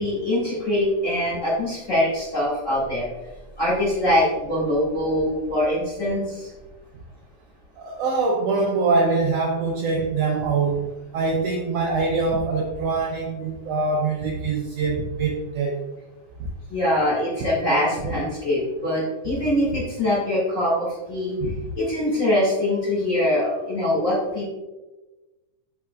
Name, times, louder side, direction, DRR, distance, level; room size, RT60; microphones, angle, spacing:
voice 1, 0.0-3.1 3.6-6.5 16.7-21.4 21.8-24.5, left 1 dB, 30° left, -8 dB, 2.0 m, -23 dB
voice 2, 7.8-15.8 16.4-16.5 21.4-21.5, right 4 dB, 75° right, -1 dB, 1.5 m, -24 dB
7.6 x 5.9 x 2.3 m, 1.1 s
omnidirectional pair, 3.5 m